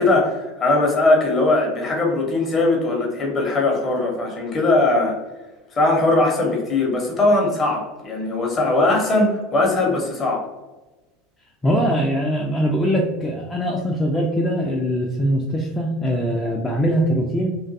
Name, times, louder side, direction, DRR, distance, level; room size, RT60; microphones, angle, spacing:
voice 1, 0.0-5.2 5.7-10.5, left 2 dB, 30° left, 0 dB, 0.7 m, -20 dB
voice 2, 11.6-17.6, equal, 15° left, -1 dB, 0.3 m, -22 dB
2.4 x 2.3 x 2.5 m, 1.1 s
figure-of-eight pair, 75°, 0 cm